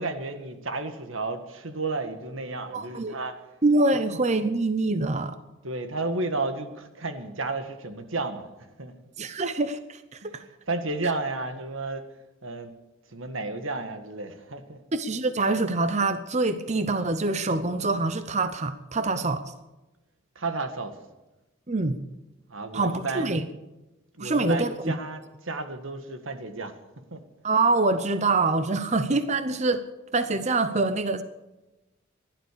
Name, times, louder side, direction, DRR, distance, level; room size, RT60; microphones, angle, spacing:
voice 1, 0.0-3.4 3.9-4.0 5.6-8.5 8.8-8.9 10.2-12.1 12.4-12.7 13.1-14.8 20.4-21.0 22.5-23.6 24.2-26.7 27.1-27.2, right 3 dB, 90° right, 7 dB, 1.8 m, -32 dB
voice 2, 2.7-3.1 3.6-5.4 9.2-10.4 14.9-19.4 21.7-22.0 22.7-23.4 24.2-24.9 27.4-29.8 30.1-31.2, right 3 dB, 35° right, 10 dB, 0.8 m, -25 dB
16.0 x 12.0 x 6.8 m, 1.0 s
head